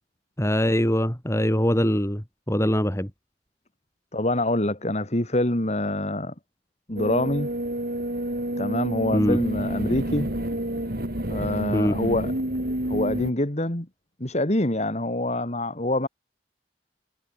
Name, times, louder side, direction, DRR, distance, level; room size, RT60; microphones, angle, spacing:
voice 1, 0.4-3.1 9.1-9.4 11.7-12.0, equal, 15° left, 3.5 m, -23 dB
voice 2, 4.1-6.3 6.9-7.5 8.6-10.3 11.3-12.3 12.9-13.9 14.2-16.1, left 1 dB, 40° left, 3.0 m, -25 dB
sound 1, 7.0-13.3, right 1 dB, 60° right, 5.1 m, -29 dB
head